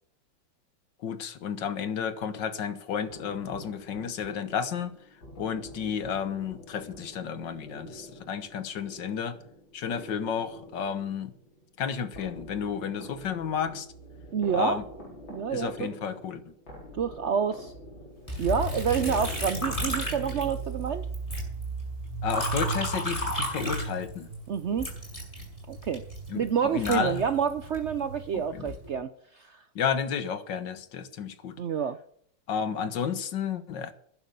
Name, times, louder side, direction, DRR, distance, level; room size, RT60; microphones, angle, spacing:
voice 1, 1.0-5.0 5.4-9.4 9.7-11.3 11.8-13.9 14.5-14.8 15.5-16.5 22.2-24.3 26.3-27.2 28.3-28.7 29.8-31.6 32.5-33.9, left 7 dB, 70° left, 1.9 m, -32 dB
sound 1, 3.1-21.2, equal, 90° left, 5.5 m, -47 dB
voice 2, 14.3-14.8 15.3-15.9 17.0-17.7 18.4-21.1 24.5-24.9 25.7-26.0 26.4-29.6 31.6-32.0, right 7 dB, 85° right, 0.6 m, -28 dB
Liquid, 18.3-20.9 21.1-24.3 24.8-27.8 28.4-28.9, left 1 dB, 15° left, 6.7 m, -33 dB
sound 2, 19.5-28.5, right 5 dB, 35° right, 1.5 m, -38 dB
12.0 x 10.5 x 7.0 m
omnidirectional pair, 2.1 m